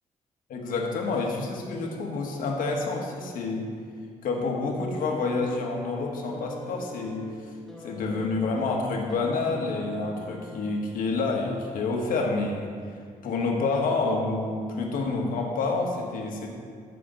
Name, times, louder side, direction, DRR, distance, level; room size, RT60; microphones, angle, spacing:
voice 1, 0.5-3.7 4.2-7.3 7.8-12.7 13.2-16.5, left 3 dB, 80° left, 0 dB, 1.5 m, -28 dB
sound 1, 4.9-11.1 12.2-12.3, left 2 dB, 5° left, 1.6 m, -44 dB
13.0 x 6.0 x 3.9 m, 2.1 s
cardioid pair, 150°, 14 cm